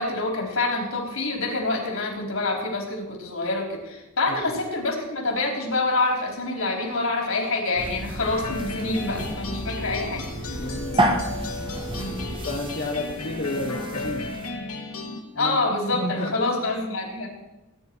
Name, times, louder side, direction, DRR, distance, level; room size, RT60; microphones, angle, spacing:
voice 1, 0.0-10.6 11.9-12.3 15.4-17.3, left 2 dB, 70° left, 1 dB, 4.0 m, -27 dB
sound 1, 7.8-14.5, right 1 dB, 25° right, 1.6 m, -30 dB
sound 2, 8.2-15.2, left 3 dB, 90° left, 2.3 m, -35 dB
voice 2, 10.2-11.1 12.4-14.3 15.3-15.6 15.9-16.5, left 1 dB, 45° left, -2 dB, 1.5 m, -31 dB
19.5 x 10.5 x 4.7 m, 0.98 s
head